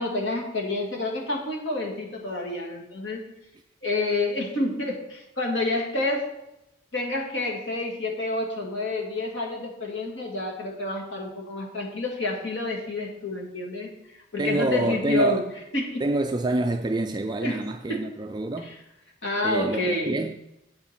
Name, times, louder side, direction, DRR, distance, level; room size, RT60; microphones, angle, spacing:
voice 1, 0.0-3.2 3.8-6.3 6.9-15.4 15.7-16.0 17.4-17.6 17.9-18.0 18.6-18.8 19.2-20.1, left 2 dB, 75° left, 2.0 m, -28 dB
voice 2, 14.4-15.5 16.0-18.8 19.4-20.4, right 2 dB, 20° right, 0.3 m, -27 dB
8.4 x 8.3 x 4.4 m
head